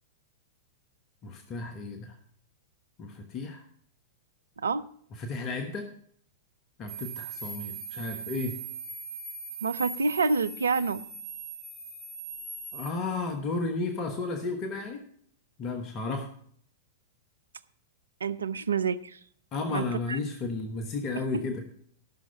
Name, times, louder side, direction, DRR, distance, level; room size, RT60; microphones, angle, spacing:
voice 1, 1.2-2.2 3.0-3.6 5.2-5.9 6.8-8.6 12.7-15.0 15.6-16.3 19.5-21.6, left 3 dB, 35° left, 6 dB, 1.2 m, -33 dB
voice 2, 4.6-4.9 9.6-11.0 18.2-19.2 19.7-20.2 21.2-21.4, right 4 dB, 75° right, 14 dB, 0.5 m, -28 dB
sound 1, 6.9-12.9, right 4 dB, 20° right, 1.9 m, -40 dB
13.5 x 6.4 x 5.5 m, 0.63 s
figure-of-eight pair, 100°, 0 cm